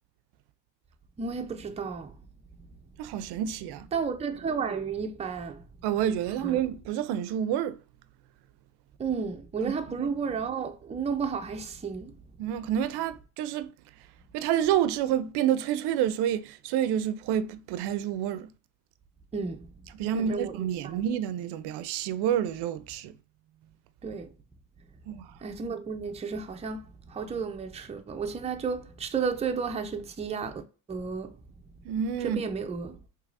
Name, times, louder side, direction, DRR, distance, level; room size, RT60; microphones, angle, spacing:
voice 1, 1.2-2.1 3.9-5.6 6.4-6.6 9.0-12.1 19.3-19.7 20.2-20.5 20.8-21.0 24.0-24.3 25.4-30.6 30.9-31.3 32.2-33.0, right 5 dB, 15° right, 0.5 m, -32 dB
voice 2, 3.0-3.9 5.8-7.8 10.0-10.1 12.4-13.7 14.3-18.5 19.9-23.1 25.1-25.3 31.8-32.4, right 10 dB, 75° right, 0.5 m, -28 dB
4.6 x 2.9 x 2.4 m
cardioid pair, 115°, 39 cm